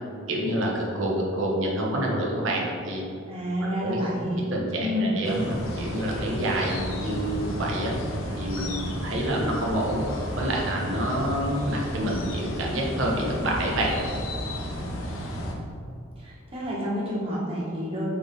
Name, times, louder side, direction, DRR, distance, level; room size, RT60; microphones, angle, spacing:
voice 1, 0.3-3.0 3.6-4.0 4.5-8.0 8.4-10.0 10.4-14.0, right 1 dB, 65° right, -2 dB, 1.2 m, -27 dB
voice 2, 3.3-4.4 4.8-5.1 16.2-18.1, equal, 30° right, -7 dB, 1.5 m, -29 dB
sound 1, 5.2-15.5, equal, 85° left, 1.0 m, -33 dB
7.9 x 3.5 x 4.0 m, 2.4 s
head